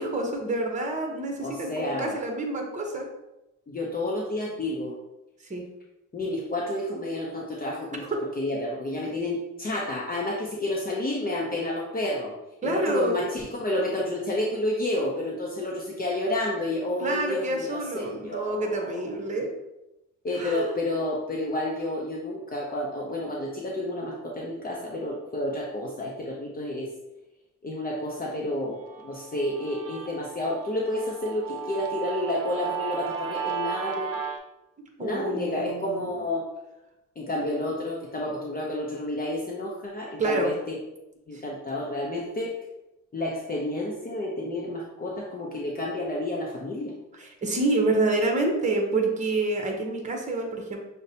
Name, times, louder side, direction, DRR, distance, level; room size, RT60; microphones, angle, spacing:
voice 1, 0.0-3.1 5.5-5.6 8.0-8.1 12.6-13.2 17.0-19.5 20.3-20.8 35.0-36.1 40.2-40.5 41.3-41.4 47.1-50.8, right 2 dB, 25° right, 2 dB, 0.9 m, -28 dB
voice 2, 1.4-2.2 3.7-5.0 6.1-8.0 8.4-12.3 12.6-18.9 20.2-26.9 27.6-34.1 35.0-36.5 37.2-40.8 41.3-42.5 43.1-46.9, left 1 dB, 30° left, -1 dB, 0.7 m, -30 dB
Guitar, 28.9-34.4, right 8 dB, 50° right, 0.6 m, -34 dB
6.3 x 2.2 x 2.8 m, 0.94 s
cardioid pair, 90°, 30 cm